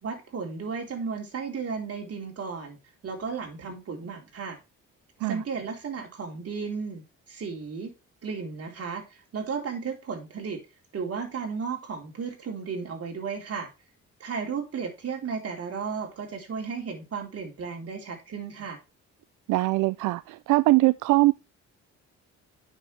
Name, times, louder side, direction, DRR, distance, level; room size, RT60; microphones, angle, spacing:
voice 1, 0.0-2.8 3.0-4.6 5.2-7.9 8.2-10.6 10.9-13.7 14.2-18.8, right 5 dB, 50° right, 3.9 m, -34 dB
voice 2, 19.5-21.3, right 20 dB, 90° right, 0.5 m, -22 dB
9.1 x 6.7 x 3.3 m
cardioid pair, 90°, 30 cm